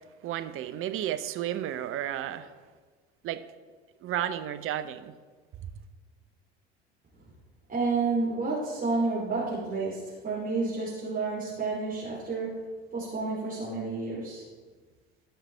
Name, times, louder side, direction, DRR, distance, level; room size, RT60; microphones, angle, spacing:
voice 1, 0.2-2.5 3.2-3.4 4.0-5.1 5.6-5.7, right 11 dB, 40° right, 10 dB, 0.8 m, -32 dB
voice 2, 7.7-12.6 12.9-14.4, right 3 dB, 25° right, -8 dB, 3.3 m, -30 dB
16.5 x 5.8 x 3.4 m, 1.4 s
figure-of-eight pair, 70°, 33 cm